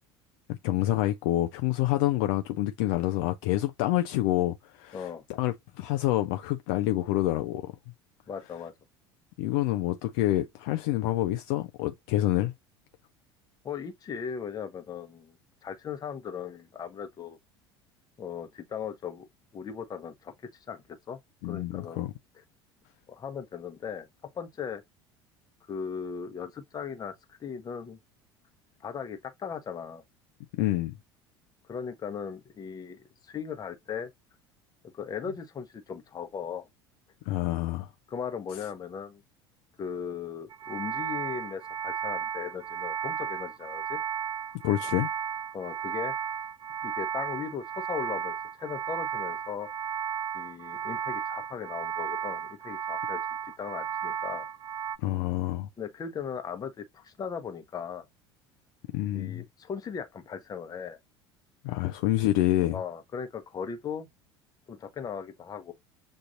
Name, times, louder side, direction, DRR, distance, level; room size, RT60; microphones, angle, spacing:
voice 1, 0.5-7.7 9.4-12.5 21.4-22.1 30.5-30.9 37.3-37.9 44.6-45.1 55.0-55.7 58.9-59.4 61.6-62.8, left 15 dB, 55° left, 0.5 m, -27 dB
voice 2, 4.9-5.2 8.3-8.7 13.6-15.4 15.6-17.4 18.2-19.3 19.5-20.3 20.7-22.0 23.1-24.1 24.3-24.8 25.7-28.0 28.8-30.0 31.7-34.1 34.9-36.7 38.1-39.2 39.8-44.0 45.5-46.1 46.8-49.7 50.3-54.5 55.8-58.0 59.1-61.0 62.6-64.1 64.7-65.7, left 7 dB, 30° left, 0.9 m, -38 dB
sound 1, 40.5-55.0, right 8 dB, 30° right, 0.5 m, -34 dB
7.1 x 2.6 x 2.5 m
figure-of-eight pair, 65°, 14 cm